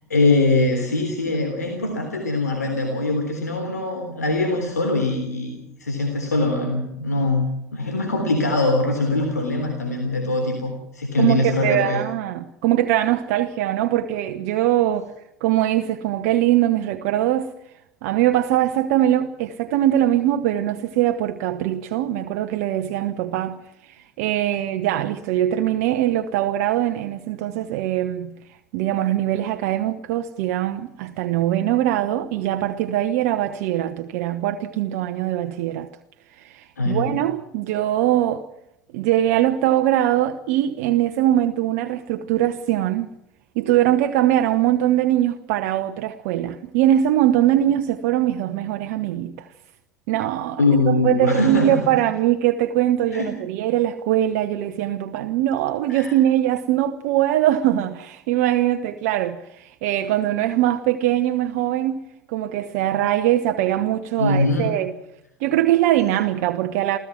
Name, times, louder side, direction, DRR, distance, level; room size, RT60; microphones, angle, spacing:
voice 1, 0.1-12.0 36.8-37.1 50.6-51.8 53.1-53.3 55.9-56.1 64.2-64.7, left 2 dB, 80° left, 3.5 m, -22 dB
voice 2, 11.2-15.1 15.4-17.5 18.0-28.4 28.7-35.9 36.3-38.5 38.9-43.1 43.5-49.5 50.1-62.0 62.3-64.9 65.4-67.0, right 12 dB, 55° right, 1.1 m, -22 dB
28.5 x 16.0 x 6.0 m
figure-of-eight pair, 70°, 9 cm